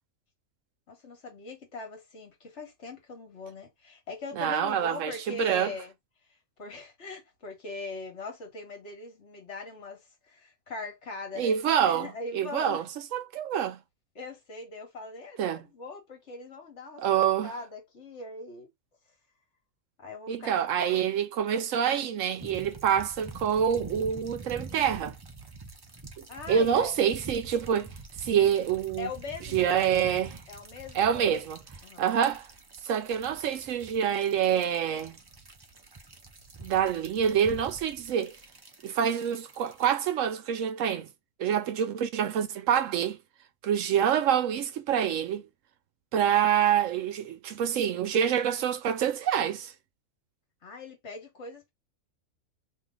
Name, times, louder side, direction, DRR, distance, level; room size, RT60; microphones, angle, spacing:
voice 1, 0.9-5.9 6.6-12.8 14.1-18.7 20.0-21.0 26.3-27.0 29.0-29.8 30.5-31.4 31.8-32.0 50.6-51.7, left 3 dB, 55° left, 1.6 m, -41 dB
voice 2, 4.3-5.7 11.4-12.1 12.3-12.8 13.1-13.8 15.4-15.6 17.0-17.5 20.3-25.1 26.2-27.9 28.2-29.1 29.5-30.4 30.9-31.6 32.0-32.5 32.8-35.2 36.6-38.4 38.8-41.1 41.4-43.2 43.6-45.4 46.1-49.7, right 8 dB, 70° right, 0.9 m, -26 dB
sound 1, 22.4-39.9, right 3 dB, 35° right, 0.3 m, -46 dB
3.0 x 2.8 x 3.7 m
omnidirectional pair, 1.5 m